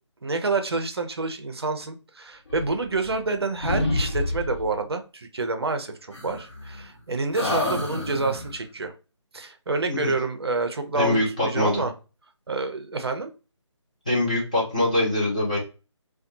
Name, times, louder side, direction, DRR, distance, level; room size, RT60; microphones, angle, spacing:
voice 1, 0.2-8.9 9.3-11.9 12.5-13.3, right 3 dB, 55° right, 7 dB, 0.5 m, -28 dB
sound 1, 2.5-3.3 3.6-4.8 6.1-7.0 7.3-8.6, left 1 dB, 60° left, 0.9 m, -29 dB
voice 2, 10.9-11.9 14.1-15.6, left 1 dB, 15° left, -6 dB, 0.4 m, -23 dB
2.6 x 2.2 x 2.5 m, 0.33 s
figure-of-eight pair, 155°, 16 cm